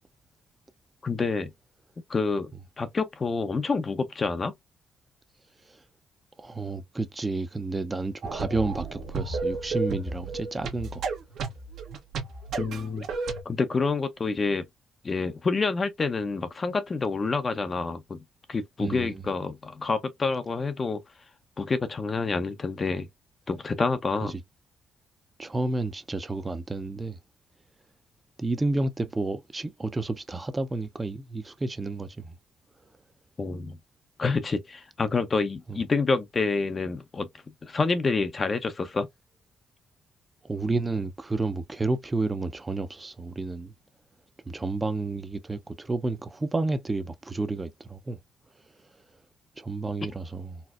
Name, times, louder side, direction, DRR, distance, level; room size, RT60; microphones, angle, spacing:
voice 1, 1.0-1.5 2.1-2.5 2.8-4.5 12.5-13.1 13.5-14.6 15.0-18.2 18.5-21.0 21.6-23.1 23.5-24.3 33.4-33.8 34.2-37.3 37.6-39.1, left 4 dB, 35° left, 0.6 m, -28 dB
voice 2, 6.4-11.0 18.8-19.2 24.2-24.4 25.4-27.2 28.4-32.3 35.7-35.8 40.4-43.7 44.5-48.2 49.6-50.6, right 3 dB, 20° right, 0.5 m, -31 dB
sound 1, 8.2-13.4, right 3 dB, 75° right, 0.9 m, -32 dB
4.2 x 2.0 x 2.3 m
cardioid pair, 90°, 0 cm